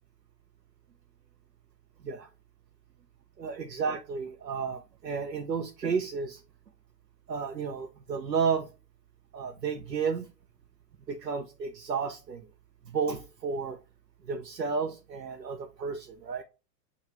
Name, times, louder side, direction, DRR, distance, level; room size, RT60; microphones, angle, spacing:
voice 1, 3.4-6.4 7.3-8.7 9.3-10.3 11.1-12.5 12.9-13.8 14.3-16.4, right 5 dB, 85° right, 4 dB, 0.6 m, -32 dB
6.6 x 2.4 x 3.2 m, 0.30 s
figure-of-eight pair, 90°, 49 cm